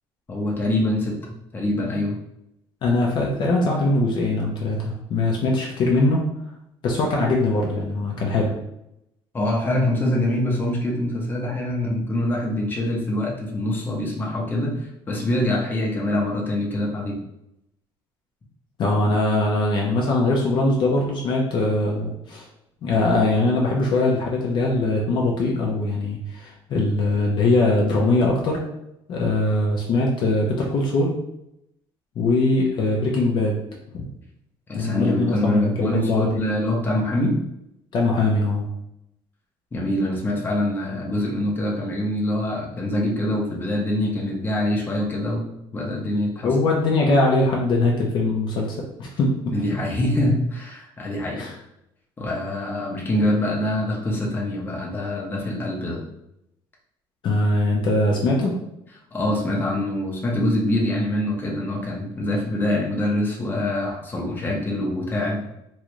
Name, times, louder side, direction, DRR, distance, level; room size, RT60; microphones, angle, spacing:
voice 1, 0.3-2.2 9.3-17.2 34.7-37.4 39.7-45.4 45.7-46.5 49.5-51.4 52.2-56.0 59.1-65.5, left 1 dB, 20° left, -2 dB, 0.8 m, -24 dB
voice 2, 2.8-6.2 6.8-8.5 18.8-22.4 22.8-28.6 29.1-31.1 32.2-33.6 33.9-34.0 34.7-36.4 37.9-38.6 46.4-49.5 51.4-51.5 57.2-58.5, left 2 dB, 50° left, -2 dB, 0.6 m, -21 dB
3.1 x 2.5 x 3.0 m, 0.82 s
cardioid pair, 130°, 10 cm